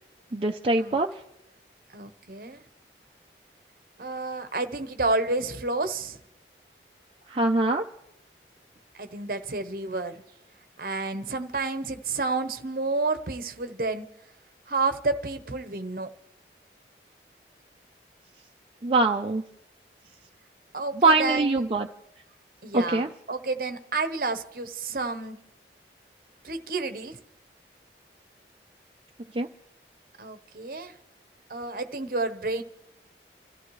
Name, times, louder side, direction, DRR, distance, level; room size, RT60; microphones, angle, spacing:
voice 1, 0.3-1.1 7.3-7.8 18.8-19.4 21.0-21.9 22.7-23.1 29.4-29.5, right 3 dB, 30° right, 0.5 m, -23 dB
voice 2, 1.9-2.6 4.0-6.2 8.9-10.2 10.8-14.1 14.7-16.1 20.7-21.6 22.6-25.4 26.4-27.2 30.2-31.0 31.5-32.6, right 3 dB, 55° right, 0.9 m, -30 dB
28.0 x 14.0 x 3.2 m
head